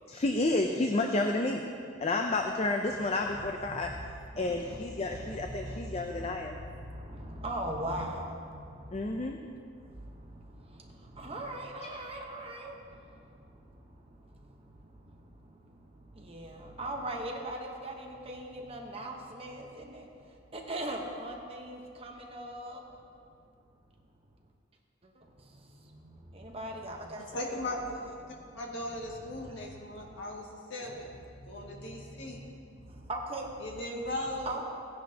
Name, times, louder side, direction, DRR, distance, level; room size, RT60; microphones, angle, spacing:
voice 1, 0.1-1.6 2.0-3.9 4.4-6.6 8.9-9.4 11.8-11.9, left 2 dB, 30° left, 3 dB, 0.5 m, -30 dB
voice 2, 3.3-22.8 25.0-28.5 28.9-30.4 31.0-33.8 34.4-34.6, right 1 dB, 30° right, 1 dB, 1.0 m, -42 dB
voice 3, 27.2-27.8 28.5-31.1 31.5-32.5 33.6-34.6, left 1 dB, 60° left, -2 dB, 1.9 m, -38 dB
17.0 x 10.0 x 2.8 m, 2.4 s
head